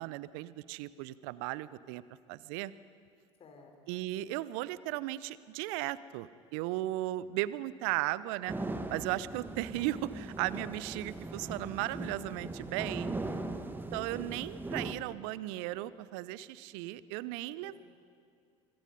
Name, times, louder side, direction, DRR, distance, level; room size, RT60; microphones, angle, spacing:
voice 1, 0.0-2.0 2.3-2.7 3.9-8.5 8.9-13.1 13.9-17.8, right 16 dB, 60° right, 18 dB, 0.7 m, -36 dB
voice 2, 3.4-4.2 13.5-14.0 17.6-17.7, left 3 dB, 40° left, 4 dB, 4.4 m, -57 dB
sound 1, 8.5-14.9, right 2 dB, 15° right, 1.7 m, -39 dB
25.0 x 22.5 x 5.5 m, 2.2 s
figure-of-eight pair, 65°, 16 cm